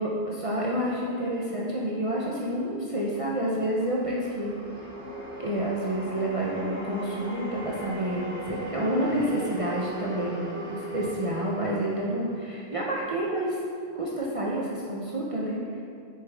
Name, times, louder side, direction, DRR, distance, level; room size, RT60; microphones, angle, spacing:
voice 1, 0.0-4.5 5.4-13.6 13.9-15.8, right 1 dB, 35° right, -5 dB, 0.8 m, -29 dB
sound 1, 2.8-13.1, equal, 85° right, 1.9 m, -39 dB
7.6 x 7.0 x 3.5 m, 2.3 s
omnidirectional pair, 1.1 m